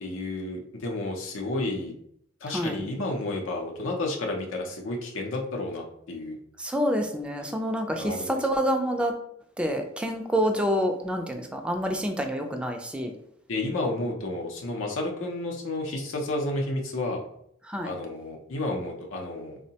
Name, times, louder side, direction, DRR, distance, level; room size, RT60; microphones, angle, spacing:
voice 1, 0.0-1.9 2.4-6.4 8.0-8.3 13.5-17.2 17.8-19.6, left 2 dB, 85° left, 1 dB, 0.5 m, -31 dB
voice 2, 2.5-2.8 6.6-9.1 9.6-13.1 17.7-17.9, equal, 5° right, 4 dB, 0.3 m, -27 dB
3.6 x 2.1 x 2.7 m, 0.70 s
head